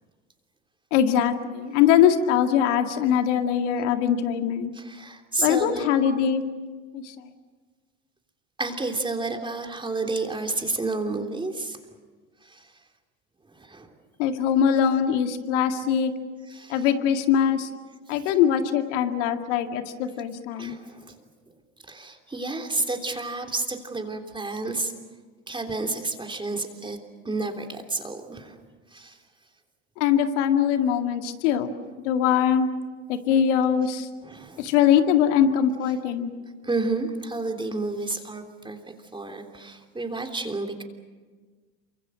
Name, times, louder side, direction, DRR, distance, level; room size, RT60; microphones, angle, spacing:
voice 1, 0.9-4.7 5.4-6.4 6.9-7.3 14.2-16.2 16.7-17.7 18.1-20.8 30.0-31.7 32.0-32.7 33.1-34.1 34.6-36.3, left 8 dB, 75° left, 6 dB, 2.2 m, -22 dB
voice 2, 4.7-5.9 8.6-11.8 12.4-12.7 13.4-13.9 16.5-16.9 18.2-18.3 20.6-21.2 21.8-24.9 25.5-27.0 27.2-28.6 28.9-29.2 34.2-34.7 36.6-38.8 39.1-40.8, right 3 dB, 15° right, 3 dB, 3.3 m, -30 dB
28.5 x 25.0 x 6.5 m, 1.4 s
hypercardioid pair, 90°, 36 cm